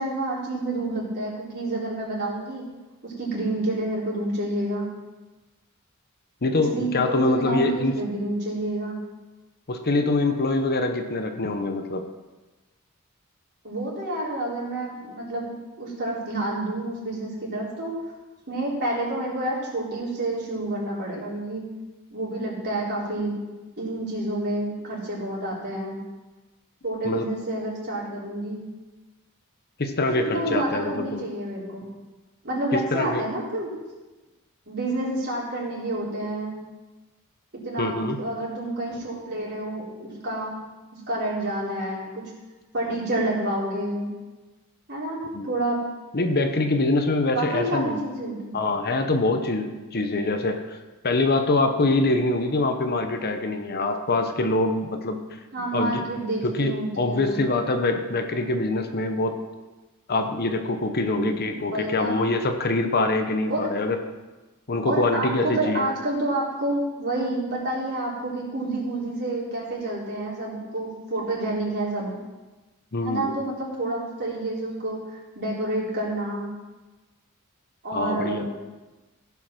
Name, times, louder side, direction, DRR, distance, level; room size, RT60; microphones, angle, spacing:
voice 1, 0.0-2.7 3.0-4.9 6.7-9.0 13.6-18.0 18.5-21.6 22.1-23.3 23.8-26.0 26.8-28.7 30.0-31.9 32.4-33.7 34.7-36.5 37.5-40.6 41.1-42.3 42.7-44.1 44.9-45.8 47.3-48.5 55.5-57.4 61.1-62.3 63.5-63.7 64.8-72.2 73.0-76.5 77.8-78.5, right 1 dB, 50° right, -5 dB, 3.9 m, -29 dB
voice 2, 6.4-7.9 9.7-12.0 27.0-27.3 29.8-31.2 32.7-33.2 37.8-38.2 45.3-45.5 46.1-48.0 48.5-50.8 51.0-55.2 55.7-56.0 56.4-59.3 60.1-64.0 64.7-65.9 72.9-73.3 77.9-78.5, left 2 dB, 45° left, 6 dB, 0.9 m, -24 dB
15.5 x 5.7 x 5.9 m, 1.2 s
head